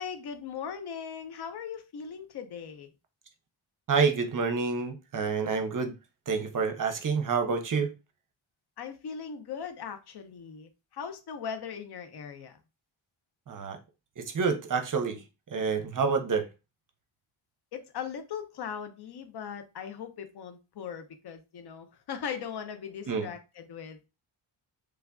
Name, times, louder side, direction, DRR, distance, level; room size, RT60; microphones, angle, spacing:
voice 1, 0.0-2.9 8.8-12.6 17.7-24.1, left 7 dB, 55° left, 0.6 m, -39 dB
voice 2, 3.9-5.9 6.3-7.9 13.5-13.8 14.2-15.2 15.5-16.4 23.1-23.3, right 5 dB, 40° right, 0.6 m, -28 dB
3.3 x 2.3 x 2.2 m
wide cardioid pair, 110°, 48 cm